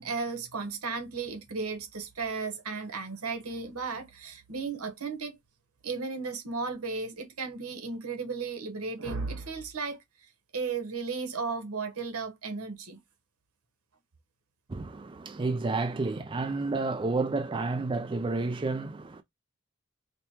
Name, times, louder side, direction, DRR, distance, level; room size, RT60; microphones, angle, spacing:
voice 1, 0.0-5.4 5.8-10.0 10.5-13.0, right 4 dB, 85° right, 1.2 m, -35 dB
voice 2, 14.7-19.2, right 3 dB, 25° right, 0.4 m, -30 dB
5.1 x 2.2 x 2.9 m
head